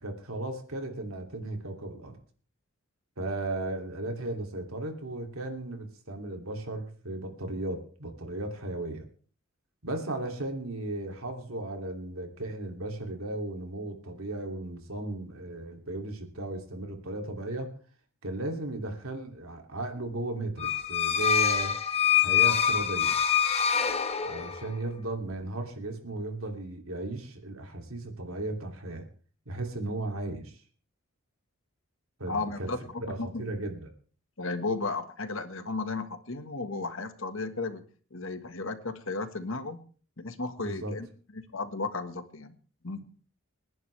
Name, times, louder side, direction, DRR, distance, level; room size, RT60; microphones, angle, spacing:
voice 1, 0.0-2.2 3.2-9.1 9.8-17.7 18.2-21.8 22.2-23.1 24.3-29.1 29.5-30.6 32.2-32.7 33.0-33.9 40.6-40.9, right 2 dB, 75° right, 4 dB, 3.0 m, -36 dB
sound 1, 20.6-24.7, left 8 dB, 30° left, 1.5 m, -25 dB
voice 2, 32.3-33.4 34.4-37.8 38.1-39.8 40.2-41.1 41.5-42.5 42.8-43.1, left 3 dB, 65° left, 8 dB, 1.7 m, -34 dB
29.5 x 11.0 x 3.5 m, 0.42 s
head